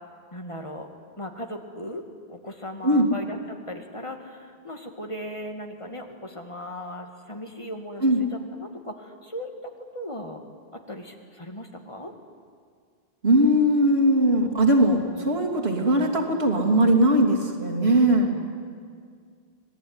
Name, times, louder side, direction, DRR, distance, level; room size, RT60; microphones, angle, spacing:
voice 1, 0.3-0.9 1.2-2.0 2.3-10.4 10.7-12.1, equal, 30° left, 4 dB, 2.1 m, -37 dB
voice 2, 13.2-18.3, right 1 dB, 80° right, -1 dB, 3.3 m, -20 dB
26.0 x 18.5 x 9.7 m, 2.1 s
omnidirectional pair, 1.0 m